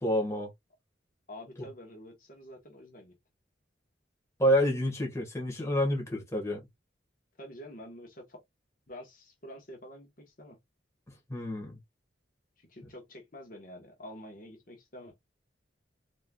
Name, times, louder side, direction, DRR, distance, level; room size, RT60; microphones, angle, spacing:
voice 1, 0.0-0.5 1.6-1.7 4.4-6.6 11.3-11.8, equal, 15° left, 1.7 m, -28 dB
voice 2, 1.3-3.1 7.4-8.4 8.9-10.6 12.6-15.1, equal, 45° left, 1.2 m, -48 dB
4.3 x 3.5 x 2.4 m
head